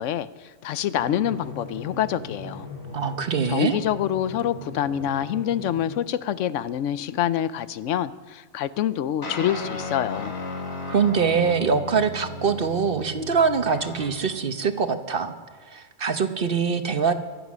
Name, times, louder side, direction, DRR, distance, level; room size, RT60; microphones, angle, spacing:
voice 1, 0.0-2.7 3.5-10.3, left 10 dB, 85° left, 15 dB, 1.0 m, -26 dB
Drum, 0.9-6.0, left 2 dB, 35° left, 6.7 m, -39 dB
voice 2, 2.9-3.8 10.9-15.3 15.7-17.1, right 5 dB, 50° right, 9 dB, 1.1 m, -23 dB
sound 1, 9.2-14.4, left 2 dB, 60° left, 1.9 m, -35 dB
24.0 x 8.2 x 6.2 m, 1.4 s
omnidirectional pair, 1.2 m